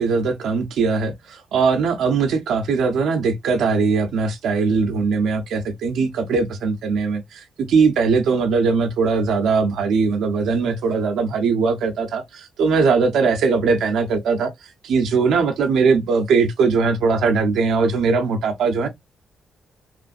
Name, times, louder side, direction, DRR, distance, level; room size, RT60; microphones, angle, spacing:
voice 1, 0.0-14.5 14.8-18.9, right 4 dB, 80° right, 0.7 m, -20 dB
3.2 x 2.5 x 2.4 m
cardioid pair, 65°, 0 cm